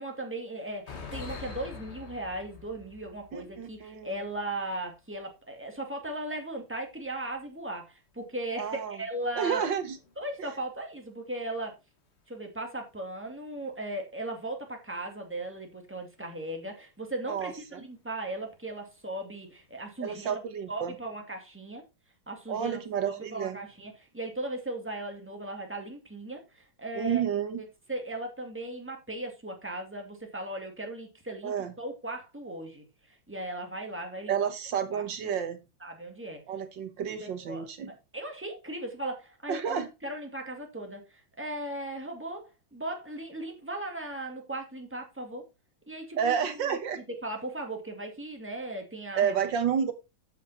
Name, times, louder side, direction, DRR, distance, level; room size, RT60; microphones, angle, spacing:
voice 1, 0.0-9.6 10.2-11.8 12.3-20.4 20.7-21.8 22.3-27.2 27.6-34.5 34.9-35.5 35.8-36.4 37.2-37.7 38.1-45.5 45.9-46.8 47.1-49.4, right 1 dB, 5° right, 2.1 m, -37 dB
sound 1, 0.7-5.3 5.6-5.7 6.9-7.1 9.3-10.5 11.5-11.7 12.2-12.3 12.7-12.8 14.7-14.8 15.4-15.5 17.9-18.2 18.7-19.1 19.6-20.1, left 5 dB, 35° left, 1.6 m, -46 dB
voice 2, 3.3-4.1 8.6-9.0 9.4-10.0 10.4-10.5 17.3-17.8 20.0-21.0 22.5-23.6 27.0-27.6 31.4-31.7 34.3-35.6 36.5-37.9 39.5-39.9 46.2-47.0 49.2-49.9, right 8 dB, 60° right, 1.8 m, -30 dB
8.2 x 7.3 x 4.2 m
omnidirectional pair, 2.3 m